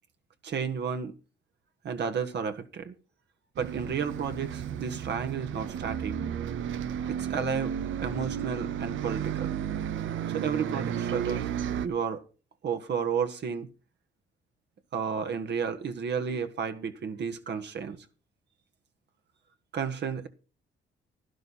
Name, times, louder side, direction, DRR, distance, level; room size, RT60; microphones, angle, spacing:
voice 1, 0.4-1.1 1.8-2.9 3.6-6.2 7.1-9.6 10.3-11.5 11.8-12.2 12.6-13.7 14.9-18.0 19.7-20.3, right 6 dB, 60° right, 1.6 m, -32 dB
Bus, 3.6-11.9, right 9 dB, 75° right, 0.8 m, -33 dB
12.0 x 11.5 x 4.3 m
cardioid pair, 90°, 20 cm